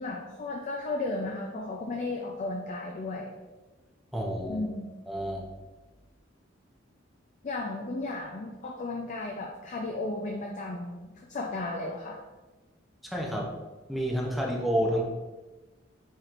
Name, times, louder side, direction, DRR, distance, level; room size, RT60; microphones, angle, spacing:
voice 1, 0.0-3.3 4.5-5.1 7.4-12.2, left 2 dB, 40° left, 1 dB, 0.4 m, -34 dB
voice 2, 4.1-4.7 5.1-5.5 13.0-13.5 13.9-15.0, equal, ahead, -1 dB, 0.6 m, -29 dB
4.8 x 4.4 x 2.5 m, 1.2 s
head